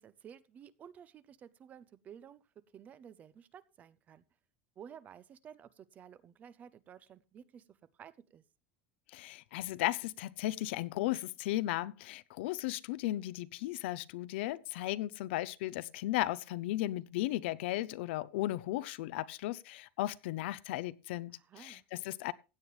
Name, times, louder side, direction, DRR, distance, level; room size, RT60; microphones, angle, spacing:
voice 1, 0.0-2.4 2.7-4.2 4.8-8.4 21.3-21.8, right 8 dB, 25° right, 0.6 m, -53 dB
voice 2, 9.1-22.3, left 16 dB, 80° left, 0.6 m, -35 dB
16.0 x 9.1 x 3.2 m
supercardioid pair, 160°, 6 cm